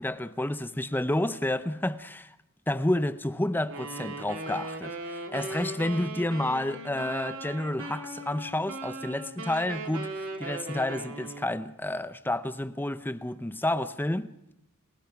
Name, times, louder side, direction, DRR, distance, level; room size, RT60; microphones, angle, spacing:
voice 1, 0.0-2.4 2.7-14.5, left 1 dB, 10° left, 0.7 m, -30 dB
Wind instrument woodwind instrument, 3.6-11.6, right 2 dB, 65° right, 3.2 m, -38 dB
30.0 x 17.0 x 5.9 m
head